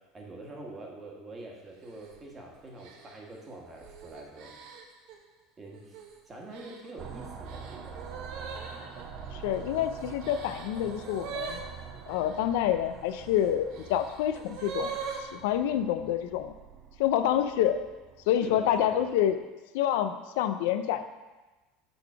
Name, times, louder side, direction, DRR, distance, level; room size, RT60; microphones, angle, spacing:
voice 1, 0.1-4.6 5.6-6.0 6.3-8.1 18.4-19.1, right 2 dB, 20° right, 0 dB, 1.3 m, -45 dB
sound 1, 1.8-2.2 2.8-5.2 5.7-6.1 6.5-12.4 13.2-15.3, right 6 dB, 65° right, 0.9 m, -42 dB
sound 2, 7.0-19.3, right 6 dB, 40° right, 0.6 m, -46 dB
voice 2, 9.3-11.6 12.1-15.0 15.3-16.5 17.0-17.8 18.3-19.4 19.7-21.0, left 10 dB, 80° left, 9 dB, 0.4 m, -27 dB
6.8 x 3.8 x 5.9 m, 1.2 s
supercardioid pair, 140°, 0 cm